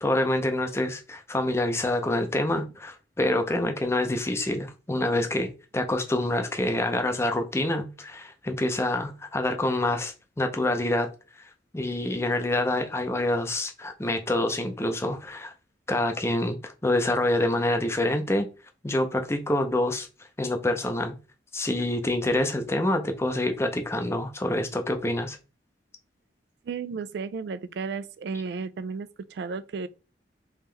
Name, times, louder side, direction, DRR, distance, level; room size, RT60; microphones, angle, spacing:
voice 1, 0.0-11.1 11.3-11.4 11.7-15.5 15.9-18.5 18.8-20.1 20.4-21.1 21.5-25.4, left 1 dB, 15° left, 0.5 m, -26 dB
voice 2, 26.7-29.9, right 5 dB, 65° right, 0.3 m, -33 dB
3.6 x 2.9 x 3.2 m
head